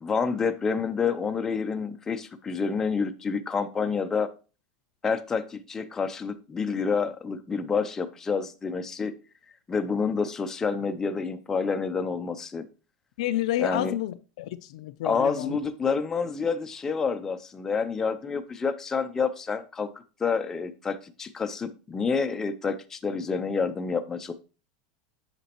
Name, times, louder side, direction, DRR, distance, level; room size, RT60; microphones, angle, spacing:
voice 1, 0.0-4.3 5.0-9.1 9.7-12.7 13.6-13.9 15.0-19.9 20.2-24.3, left 5 dB, 10° left, 0.5 m, -28 dB
voice 2, 13.2-15.6, left 14 dB, 75° left, 0.5 m, -30 dB
8.3 x 5.9 x 2.9 m
supercardioid pair, 160°, 4 cm